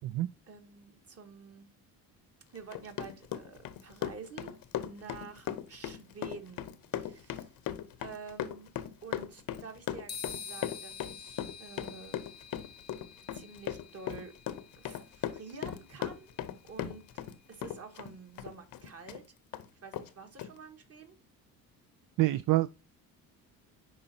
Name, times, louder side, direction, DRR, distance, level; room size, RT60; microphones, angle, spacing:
voice 1, 0.5-1.7 2.5-6.7 7.0-7.6 8.0-8.7 9.0-12.2 13.3-14.3 14.8-16.4 16.7-17.0 17.5-19.2 19.8-21.2, right 5 dB, 40° right, 1.8 m, -49 dB
Run, 2.6-17.4 17.6-19.2 19.5-19.7 19.9-20.1 20.4-20.5, left 11 dB, 65° left, 0.9 m, -37 dB
sound 1, 10.1-17.7, left 7 dB, 25° left, 0.8 m, -48 dB
voice 2, 22.2-22.7, right 17 dB, 60° right, 0.5 m, -26 dB
10.5 x 4.1 x 2.8 m
cardioid pair, 90°, 36 cm